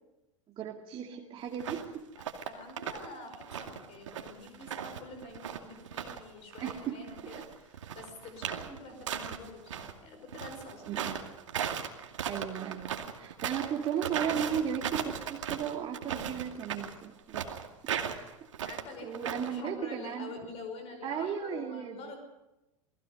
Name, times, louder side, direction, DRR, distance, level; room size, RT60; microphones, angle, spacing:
voice 1, 0.5-2.1 6.6-7.4 10.9-11.1 12.3-17.5 19.0-20.3 21.0-22.1, right 8 dB, 30° right, 2 dB, 2.3 m, -36 dB
sound 1, 1.5-1.9 2.2-3.1 3.3-6.2 6.5-9.9 10.3-19.6, right 8 dB, 65° right, 2.4 m, -37 dB
voice 2, 2.5-10.8 18.6-22.2, left 3 dB, 35° left, 6 dB, 5.6 m, -46 dB
29.0 x 20.5 x 5.4 m, 0.97 s
figure-of-eight pair, 85°, 17 cm